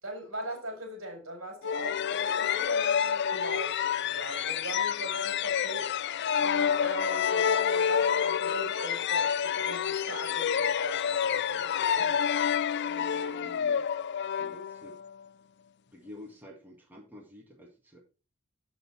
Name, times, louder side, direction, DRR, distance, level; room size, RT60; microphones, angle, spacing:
voice 1, 0.0-12.3, right 1 dB, 70° right, 4.6 m, -40 dB
sound 1, 1.6-15.1, left 8 dB, 55° left, 0.4 m, -28 dB
voice 2, 12.8-13.9 14.4-15.0 15.9-18.0, left 1 dB, 10° right, 1.9 m, -49 dB
7.9 x 7.0 x 4.4 m
head